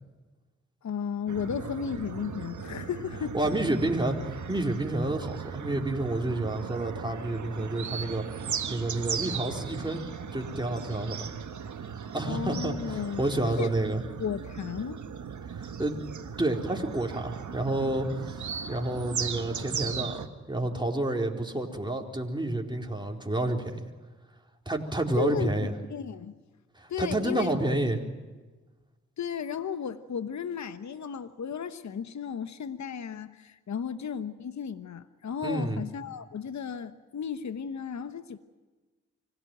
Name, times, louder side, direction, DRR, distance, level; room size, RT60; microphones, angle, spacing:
voice 1, 0.8-3.4 12.3-13.2 13.6-13.7 14.2-15.0 25.2-26.3 26.9-27.5 29.2-38.4, left 7 dB, 65° left, 11 dB, 1.1 m, -34 dB
sound 1, 1.3-20.3, right 7 dB, 65° right, 1.6 m, -37 dB
voice 2, 3.3-10.0 10.3-11.3 12.1-14.0 15.6-16.0 16.4-23.9 24.7-25.7 26.8-28.0 35.4-35.8, right 1 dB, 15° right, 1 dB, 4.3 m, -29 dB
25.5 x 17.0 x 9.2 m, 1.3 s
supercardioid pair, 40°, 31 cm